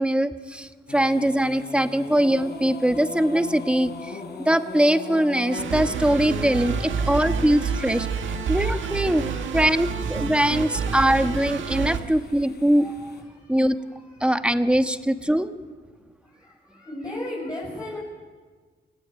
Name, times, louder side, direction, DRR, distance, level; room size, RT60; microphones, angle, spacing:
voice 1, 0.0-4.2 4.4-8.1 8.5-9.2 9.5-13.1 13.5-13.8 14.2-15.5, right 1 dB, 5° right, 9 dB, 1.3 m, -22 dB
sound 1, 0.9-13.2, left 4 dB, 60° left, 3.9 m, -40 dB
sound 2, 5.5-12.0, right 5 dB, 85° right, 2.1 m, -28 dB
voice 2, 8.1-8.5 9.3-9.7 10.6-10.7 11.8-12.3 12.8-12.9 13.3-13.5 13.9-14.1 16.3-18.0, left 1 dB, 20° left, -6 dB, 7.2 m, -38 dB
28.5 x 16.5 x 9.4 m, 1.5 s
cardioid pair, 110°, 19 cm